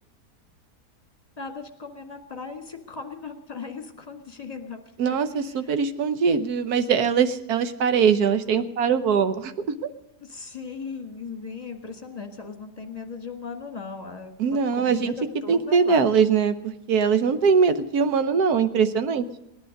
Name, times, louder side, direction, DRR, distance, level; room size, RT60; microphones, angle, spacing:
voice 1, 1.4-5.2 5.6-5.8 10.2-16.1, left 4 dB, 25° left, 5 dB, 1.8 m, -38 dB
voice 2, 5.0-9.7 14.4-15.1 15.5-19.2, right 6 dB, 70° right, 11 dB, 1.4 m, -22 dB
18.0 x 10.5 x 6.5 m, 0.88 s
omnidirectional pair, 1.7 m